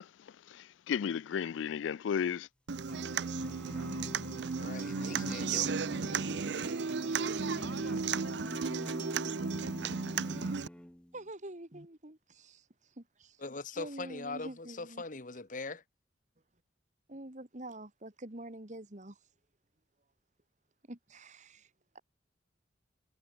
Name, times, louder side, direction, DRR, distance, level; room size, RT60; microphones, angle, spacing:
voice 1, 0.2-2.5, left 7 dB, 75° left, 0.3 m, -34 dB
Human voice / Acoustic guitar, 2.7-10.7, right 5 dB, 60° right, 0.6 m, -34 dB
sound 1, 2.9-11.2, equal, 5° left, 0.5 m, -45 dB
voice 2, 2.9-4.3 6.1-10.1, right 4 dB, 85° right, 3.3 m, -54 dB
voice 3, 4.6-5.8 13.4-15.8, left 3 dB, 45° left, 1.3 m, -41 dB
voice 4, 11.1-13.4 13.8-15.0 17.1-19.2 20.9-22.0, right 1 dB, 40° right, 2.0 m, -47 dB
head